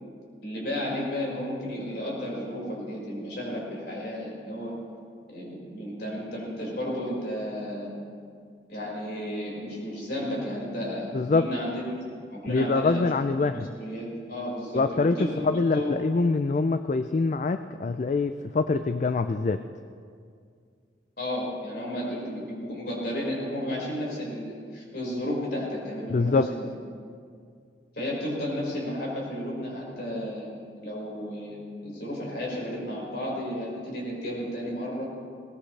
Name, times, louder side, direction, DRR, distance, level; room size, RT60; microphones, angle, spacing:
voice 1, 0.4-4.8 5.3-7.9 8.7-12.0 12.3-13.1 13.4-15.3 15.7-16.1 21.2-26.7 27.9-35.0, equal, 60° left, -4 dB, 5.3 m, -33 dB
voice 2, 11.1-11.5 12.5-13.7 14.7-15.2 15.4-19.6 26.1-26.5, left 3 dB, 40° left, 10 dB, 0.4 m, -24 dB
20.5 x 19.0 x 3.3 m, 2.2 s
head